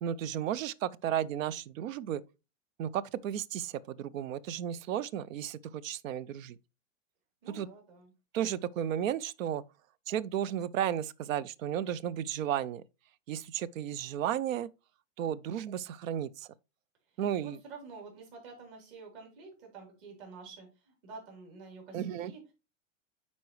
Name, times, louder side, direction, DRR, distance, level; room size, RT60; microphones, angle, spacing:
voice 1, 0.0-2.2 2.8-6.6 7.5-7.7 8.3-9.6 10.1-12.8 13.3-14.7 15.2-16.5 17.2-17.6 21.9-22.3, right 10 dB, 80° right, 0.6 m, -33 dB
voice 2, 7.4-8.1 17.2-22.5, right 4 dB, 45° right, 3.5 m, -49 dB
9.3 x 4.2 x 3.1 m
supercardioid pair, 155°, 39 cm